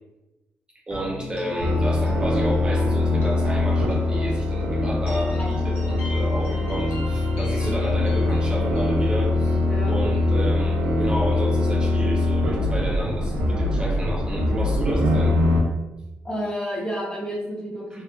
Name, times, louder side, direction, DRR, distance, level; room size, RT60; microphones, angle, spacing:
sound 1, 0.9-10.7, left 1 dB, 65° left, 0.8 m, -37 dB
voice 1, 0.9-15.3 17.9-18.0, equal, 20° right, -3 dB, 0.3 m, -31 dB
sound 2, 1.6-15.6, left 2 dB, 80° right, 0.5 m, -22 dB
voice 2, 16.2-18.0, equal, 20° left, -3 dB, 0.6 m, -30 dB
2.8 x 2.3 x 2.2 m, 1.0 s
wide cardioid pair, 165°, 4 cm